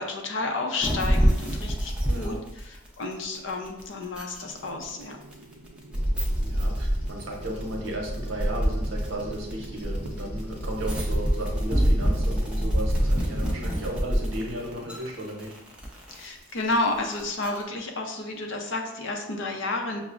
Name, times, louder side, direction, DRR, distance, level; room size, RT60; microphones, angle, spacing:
voice 1, 0.0-5.2 16.1-20.0, left 2 dB, 65° left, 3 dB, 0.5 m, -31 dB
sound 1, 0.8-17.6, equal, 5° right, 0.5 m, -27 dB
voice 2, 2.1-2.4 6.4-15.6 15.8-16.0, right 1 dB, 70° right, 0 dB, 0.8 m, -35 dB
sound 2, 4.4-15.0, right 2 dB, 90° right, 0.4 m, -45 dB
Bird vocalization bird call bird song, 5.9-13.2, equal, 35° left, 0.8 m, -29 dB
5.9 x 2.0 x 2.4 m, 0.93 s
head